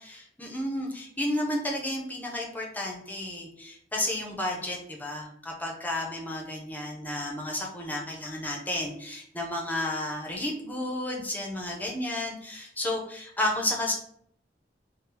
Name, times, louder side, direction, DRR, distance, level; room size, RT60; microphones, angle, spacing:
voice 1, 0.0-13.9, left 1 dB, 10° left, -1 dB, 0.5 m, -32 dB
2.7 x 2.1 x 3.7 m, 0.67 s
head